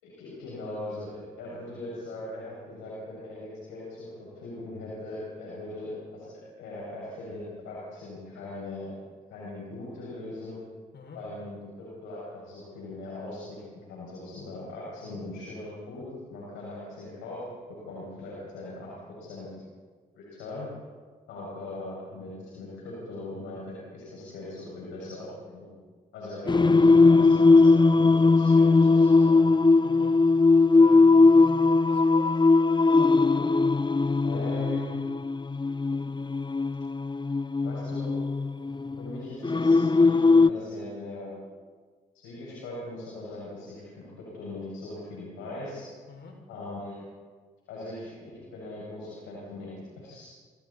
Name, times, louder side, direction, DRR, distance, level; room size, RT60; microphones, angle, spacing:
voice 1, 0.0-6.3 6.6-8.9 9.3-10.6 11.1-13.6 13.9-16.0 16.3-17.4 17.9-18.9 19.2-19.5 20.1-20.7 21.3-25.7 26.1-29.4 34.2-35.0 37.6-38.1 39.0-41.3 42.1-45.9 46.5-47.0 47.7-49.7 50.0-50.3, left 2 dB, 85° left, -6 dB, 7.0 m, -40 dB
Singing, 26.5-40.5, left 3 dB, 25° left, 0.7 m, -20 dB
voice 2, 29.8-30.2 30.6-32.3 46.1-46.4, left 4 dB, 65° left, 2 dB, 6.3 m, -45 dB
29.5 x 27.0 x 4.4 m, 1.5 s
hypercardioid pair, 40°, 20 cm